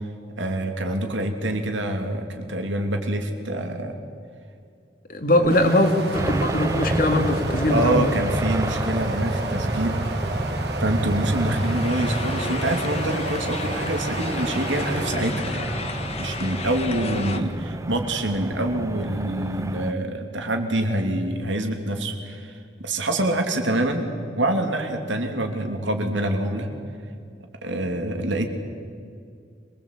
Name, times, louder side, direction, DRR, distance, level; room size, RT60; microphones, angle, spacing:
voice 1, 0.4-4.0 5.3-5.7 7.7-10.0 10.8-15.7 16.2-22.5 22.8-24.0 24.4-26.7 27.6-28.4, right 1 dB, 90° right, 4 dB, 3.0 m, -26 dB
voice 2, 5.1-8.1, left 1 dB, 50° left, 5 dB, 2.3 m, -21 dB
sound 1, 5.4-15.1, right 2 dB, 60° right, 2.8 m, -33 dB
sound 2, 6.1-19.9, right 1 dB, 15° right, 0.6 m, -29 dB
sound 3, 11.3-17.4, left 4 dB, 35° left, 1.5 m, -34 dB
26.0 x 20.0 x 8.4 m, 2.3 s
head